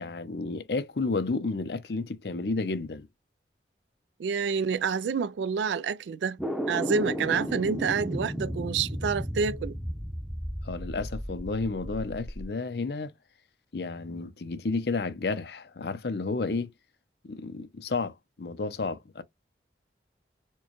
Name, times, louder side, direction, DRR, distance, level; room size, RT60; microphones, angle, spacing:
voice 1, 0.0-3.1 7.0-7.1 10.6-13.1 13.7-16.7 17.2-19.2, left 3 dB, 65° left, 0.6 m, -31 dB
voice 2, 4.2-6.4 6.7-9.8, right 5 dB, 85° right, 0.3 m, -28 dB
sound 1, 6.4-12.5, equal, ahead, 0.7 m, -34 dB
4.4 x 2.2 x 3.0 m
head